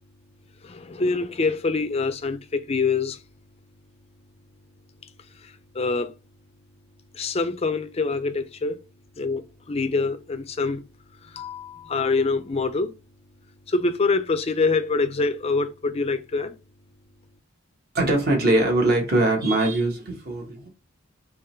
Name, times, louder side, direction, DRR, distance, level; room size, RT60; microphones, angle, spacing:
voice 1, 0.6-3.2 5.0-6.1 7.1-8.8 9.2-10.8 11.2-12.9 13.7-16.5, left 3 dB, 30° left, 0.4 m, -25 dB
voice 2, 17.9-20.7, right 1 dB, 45° right, 1.3 m, -22 dB
3.7 x 3.0 x 4.4 m
head